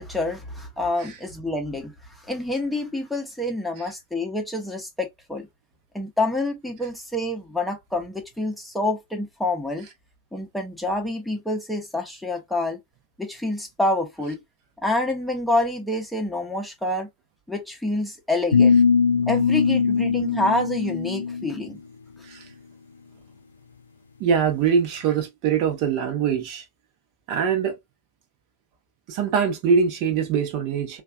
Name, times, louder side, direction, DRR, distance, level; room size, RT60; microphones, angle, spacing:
voice 1, 0.0-1.9 2.2-5.5 5.9-9.9 10.3-12.8 13.2-14.4 14.8-17.1 17.5-18.8 19.3-21.8, left 2 dB, ahead, 0.8 m, -27 dB
sound 1, 18.5-21.7, left 5 dB, 75° left, 0.4 m, -20 dB
voice 2, 24.2-26.6 27.3-27.8 29.1-31.0, right 6 dB, 45° right, 0.9 m, -23 dB
3.2 x 2.4 x 2.2 m
figure-of-eight pair, 90°, 0 cm